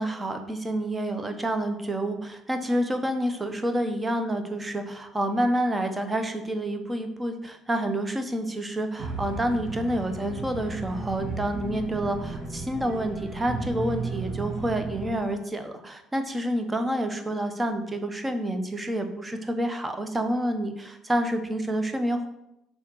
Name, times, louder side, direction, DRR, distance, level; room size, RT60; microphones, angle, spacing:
voice 1, 0.0-22.3, right 1 dB, 20° right, 7 dB, 1.2 m, -28 dB
sound 1, 9.0-15.1, right 3 dB, 50° right, 2.7 m, -34 dB
7.0 x 5.1 x 6.4 m, 0.86 s
figure-of-eight pair, 50°, 0 cm